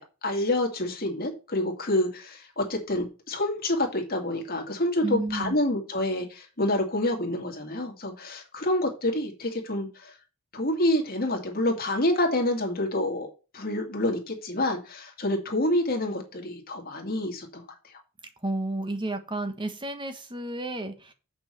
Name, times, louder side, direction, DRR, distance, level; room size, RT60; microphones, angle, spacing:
voice 1, 0.0-10.1 10.5-17.6, left 1 dB, 40° left, 2.3 m, -28 dB
voice 2, 5.0-5.6 18.4-21.1, right 2 dB, 20° right, 1.2 m, -31 dB
7.4 x 5.9 x 6.9 m
head